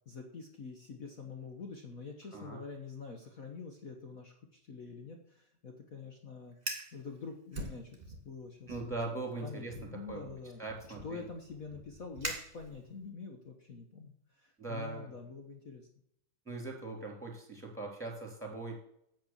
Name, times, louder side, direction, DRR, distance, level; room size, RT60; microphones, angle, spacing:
voice 1, 0.1-6.5 6.9-10.6 11.0-15.9, left 5 dB, 85° left, 3 dB, 0.7 m, -46 dB
Fire, 6.5-7.0 7.5-8.3 8.7-9.0 9.7-13.1, right 2 dB, 20° right, 2.1 m, -43 dB
voice 2, 8.7-9.7 10.1-10.2 10.6-11.2 14.6-15.1 16.5-18.8, right 3 dB, ahead, 0 dB, 2.9 m, -40 dB
9.2 x 8.1 x 7.3 m, 0.75 s
omnidirectional pair, 3.4 m